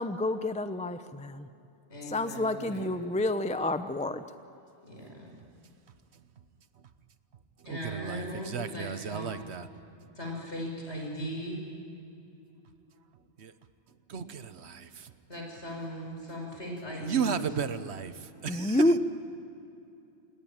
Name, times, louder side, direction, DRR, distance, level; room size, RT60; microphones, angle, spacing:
voice 1, 0.0-1.5 2.1-4.2 18.5-19.0, left 1 dB, 10° left, 10 dB, 0.6 m, -28 dB
voice 2, 1.9-2.9 4.9-5.3 7.6-9.4 10.2-11.6 14.1-14.4 15.3-17.5, equal, 65° left, 0 dB, 6.2 m, -38 dB
voice 3, 7.6-9.7 13.4-13.5 14.1-15.1 17.0-19.0, right 6 dB, 65° right, 12 dB, 1.2 m, -34 dB
28.5 x 19.0 x 8.9 m, 2.7 s
omnidirectional pair, 1.2 m